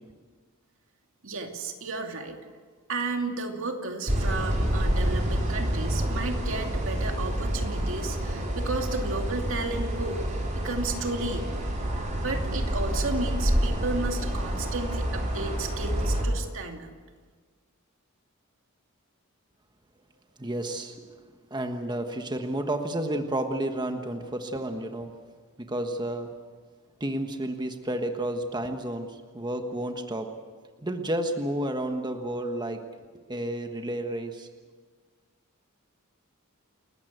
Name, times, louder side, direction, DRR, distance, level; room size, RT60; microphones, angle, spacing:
voice 1, 1.2-2.4 2.9-11.7 12.2-16.9, right 3 dB, 65° right, 3 dB, 2.6 m, -33 dB
sound 1, 4.1-16.2, right 1 dB, 35° right, 4.9 m, -28 dB
voice 2, 20.4-21.2 21.5-25.1 25.6-26.3 27.0-30.3 30.8-32.8 33.1-34.5, right 1 dB, 20° right, 5 dB, 1.3 m, -31 dB
29.0 x 14.5 x 8.1 m, 1.5 s
head